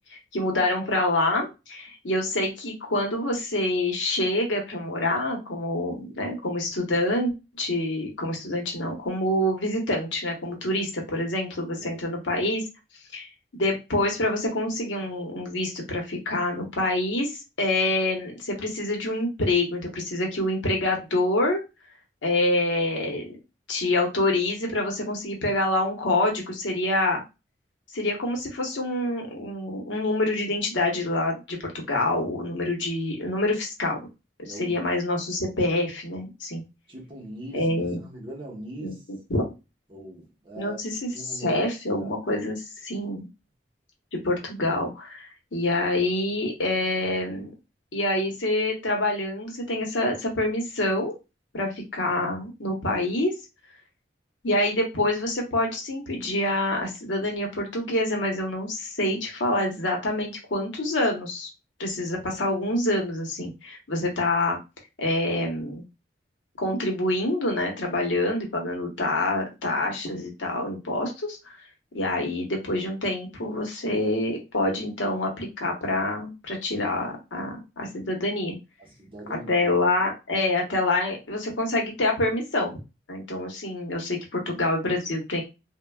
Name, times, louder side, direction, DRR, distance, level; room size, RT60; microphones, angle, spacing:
voice 1, 0.1-7.3 7.6-12.7 13.1-21.6 22.2-23.3 23.7-27.2 27.9-34.0 34.4-36.6 37.5-38.0 38.8-39.4 40.6-43.3 44.1-47.5 47.9-51.1 51.5-53.3 54.4-61.5 61.8-64.6 65.0-65.8 66.6-71.4 71.9-78.5 79.3-82.7 83.1-85.4, left 1 dB, 80° left, 0.8 m, -26 dB
voice 2, 34.4-34.8 36.9-39.0 39.9-40.8 41.1-41.6 41.9-42.1 78.8-79.7, right 1 dB, 25° right, 0.9 m, -41 dB
3.1 x 2.1 x 2.2 m
head